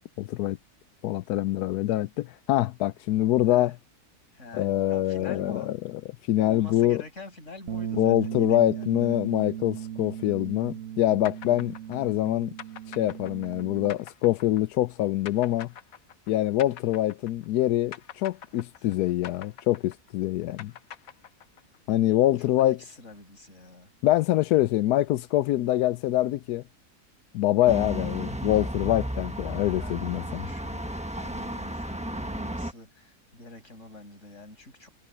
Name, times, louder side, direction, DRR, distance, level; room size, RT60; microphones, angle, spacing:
voice 1, 0.2-0.6 1.0-3.7 4.5-5.8 6.2-7.0 7.9-12.5 12.9-15.7 16.3-20.7 21.9-22.8 24.0-26.6 27.3-30.4, left 14 dB, 85° left, 1.1 m, -25 dB
voice 2, 4.3-5.7 6.4-9.1 18.5-18.9 22.2-23.9 29.6-34.9, left 2 dB, 50° left, 6.5 m, -46 dB
Bass guitar, 7.7-13.9, right 9 dB, 65° right, 1.7 m, -37 dB
sound 1, 11.2-17.6 17.9-21.8, left 9 dB, 65° left, 1.3 m, -45 dB
sound 2, 27.7-32.7, right 1 dB, 5° right, 1.0 m, -33 dB
omnidirectional pair, 1.6 m